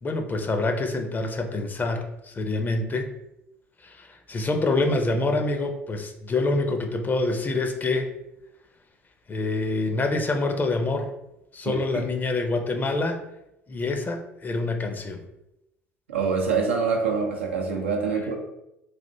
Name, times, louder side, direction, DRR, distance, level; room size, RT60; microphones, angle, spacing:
voice 1, 0.0-3.1 3.8-8.1 9.3-11.1 11.5-13.2 13.7-15.2, left 2 dB, 30° left, 5 dB, 0.6 m, -26 dB
voice 2, 11.7-12.1 16.1-18.4, right 5 dB, 85° right, 0 dB, 0.5 m, -25 dB
3.3 x 2.4 x 2.7 m, 0.88 s
hypercardioid pair, 65°, 6 cm